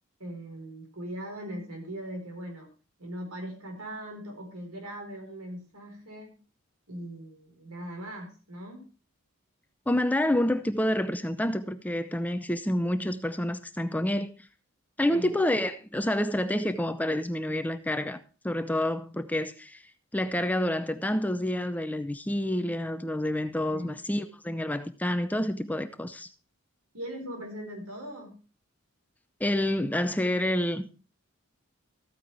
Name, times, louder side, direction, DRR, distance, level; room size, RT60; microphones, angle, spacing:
voice 1, 0.2-2.7 3.0-6.4 6.9-8.9 15.1-15.3 23.7-23.9 26.9-28.4, right 1 dB, 90° right, 4.3 m, -40 dB
voice 2, 9.9-14.3 15.0-19.8 20.1-26.3 29.4-30.9, left 1 dB, 5° left, 0.6 m, -28 dB
14.5 x 9.0 x 3.3 m
head